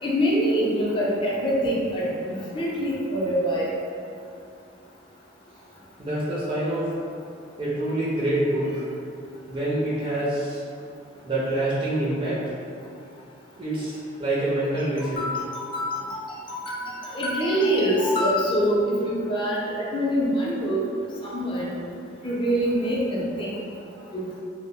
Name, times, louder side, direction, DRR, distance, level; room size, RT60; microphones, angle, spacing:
voice 1, 0.0-2.1 2.5-3.7 15.0-20.8 21.2-21.7 22.2-23.6 24.1-24.2, equal, 25° left, -5 dB, 0.5 m, -25 dB
voice 2, 6.0-6.9 7.6-8.8 9.5-10.6 11.2-12.4 13.6-15.2, right 1 dB, 30° right, -8 dB, 0.5 m, -26 dB
2.0 x 2.0 x 3.6 m, 2.4 s
head